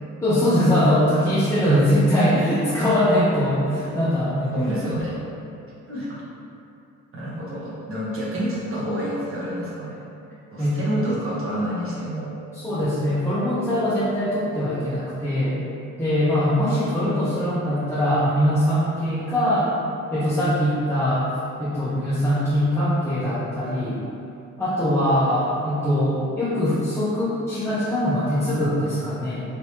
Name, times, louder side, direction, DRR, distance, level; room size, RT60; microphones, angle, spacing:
voice 1, 0.2-4.5 10.6-10.8 12.5-15.6 16.0-19.7 20.1-21.3 21.6-24.0 24.6-29.4, equal, 10° left, -11 dB, 0.7 m, -22 dB
voice 2, 1.5-1.9 4.5-5.2 5.9-6.2 7.1-10.0 10.5-12.3 25.1-25.2, right 1 dB, 45° right, -7 dB, 1.2 m, -28 dB
3.4 x 2.9 x 2.9 m, 2.7 s
cardioid pair, 90°, 30 cm